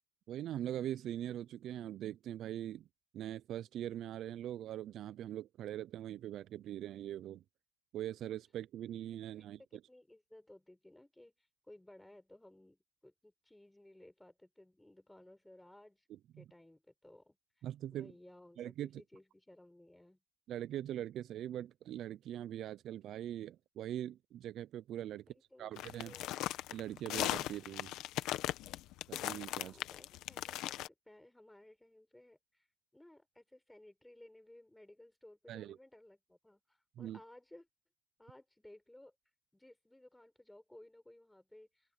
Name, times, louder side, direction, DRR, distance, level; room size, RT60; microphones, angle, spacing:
voice 1, 0.3-2.9 3.1-7.4 7.9-9.6 16.3-16.4 17.6-18.1 18.6-19.0 20.5-25.2 25.6-26.1 26.7-27.9 29.1-29.8 35.5-35.8 37.0-37.2, right 11 dB, 60° right, 0.5 m, -42 dB
voice 2, 9.4-16.1 16.4-20.2 25.1-25.7 26.0-26.6 29.6-32.7 32.9-37.7 38.2-39.1 39.5-41.9, left 1 dB, 5° left, 6.5 m, -59 dB
sound 1, 25.8-30.9, left 15 dB, 75° left, 1.1 m, -38 dB
open air
cardioid pair, 110°, 0 cm